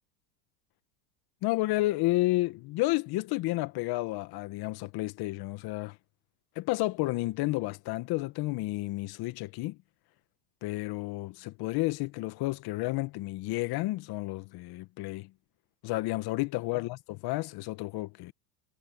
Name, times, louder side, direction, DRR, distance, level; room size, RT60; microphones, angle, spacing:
voice 1, 1.4-5.9 6.5-9.8 10.6-15.3 15.8-18.3, left 19 dB, 50° left, 1.5 m, -31 dB
hypercardioid pair, 105°, 49 cm